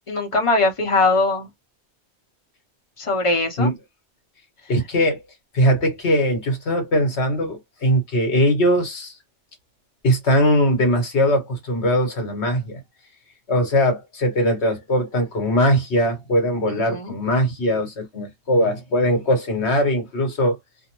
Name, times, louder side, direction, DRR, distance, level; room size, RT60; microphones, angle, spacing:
voice 1, 0.1-1.5 3.0-3.7 16.7-17.1, left 3 dB, 30° left, 0.7 m, -21 dB
voice 2, 4.7-5.2 5.5-9.1 10.0-12.8 13.5-20.6, equal, 65° left, 1.3 m, -20 dB
2.6 x 2.0 x 2.9 m
omnidirectional pair, 1.2 m